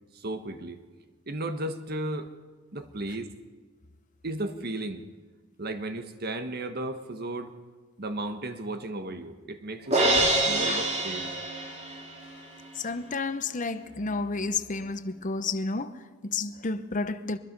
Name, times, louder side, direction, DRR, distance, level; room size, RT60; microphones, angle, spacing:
voice 1, 0.1-0.8 1.3-2.3 2.7-3.3 4.2-5.0 5.6-7.5 8.0-11.3, right 1 dB, 50° right, 1.3 m, -34 dB
Crash cymbal, 9.9-12.2, right 2 dB, 30° right, 2.8 m, -25 dB
voice 2, 12.8-17.4, left 3 dB, 40° left, 0.9 m, -31 dB
23.5 x 21.5 x 5.4 m
head